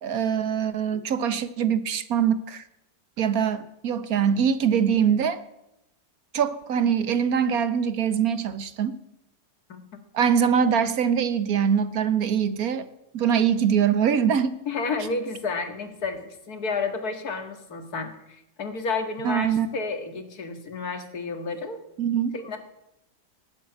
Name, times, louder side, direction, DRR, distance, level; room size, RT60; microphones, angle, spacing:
voice 1, 0.0-2.6 3.2-5.4 6.3-9.0 10.1-12.9 13.1-14.6 19.2-19.7 22.0-22.4, right 8 dB, 60° right, 12 dB, 1.3 m, -23 dB
voice 2, 14.7-21.8 22.3-22.6, left 4 dB, 55° left, 7 dB, 2.2 m, -31 dB
18.5 x 8.4 x 8.9 m, 0.88 s
omnidirectional pair, 2.0 m